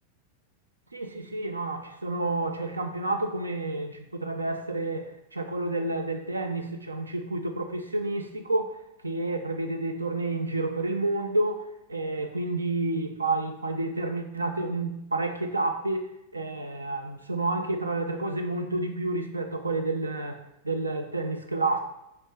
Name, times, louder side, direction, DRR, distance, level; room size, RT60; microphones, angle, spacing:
voice 1, 0.9-8.7 9.0-16.1 16.3-21.8, right 2 dB, 80° right, 6 dB, 0.4 m, -30 dB
5.0 x 2.2 x 3.4 m, 0.85 s
figure-of-eight pair, 90°, 0 cm